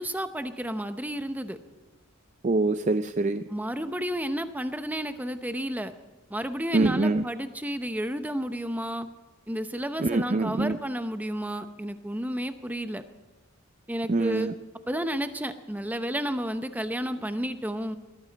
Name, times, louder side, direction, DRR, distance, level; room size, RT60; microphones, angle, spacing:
voice 1, 0.0-1.6 3.5-5.9 6.3-9.1 9.5-13.0 13.9-14.5 14.9-18.0, equal, 10° right, 9 dB, 0.8 m, -31 dB
voice 2, 2.4-3.4 6.7-7.2 10.0-10.8 14.1-14.5, right 3 dB, 35° right, 11 dB, 0.4 m, -24 dB
20.0 x 14.5 x 4.1 m, 1.3 s
head